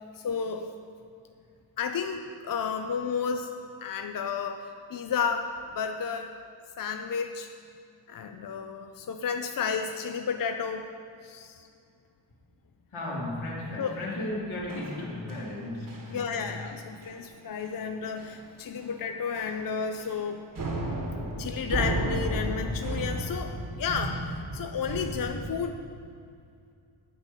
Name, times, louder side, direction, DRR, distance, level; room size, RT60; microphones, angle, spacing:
voice 1, 0.2-0.7 1.8-3.5 3.8-5.5 5.7-6.3 6.8-7.5 8.1-10.9 11.2-11.6 13.8-14.0 16.1-20.4 21.4-25.8, left 6 dB, 45° left, 5 dB, 0.5 m, -32 dB
voice 2, 12.9-16.6, left 1 dB, 80° left, -5 dB, 2.9 m, -35 dB
sound 1, 14.7-15.6 15.9-16.2 16.4-16.7 17.0-17.2 17.6-17.7 18.2-18.5 18.8-18.9 19.3-20.2 20.5-25.5, right 1 dB, 45° right, 1.3 m, -34 dB
10.5 x 5.3 x 8.2 m, 2.4 s
wide cardioid pair, 130°, 48 cm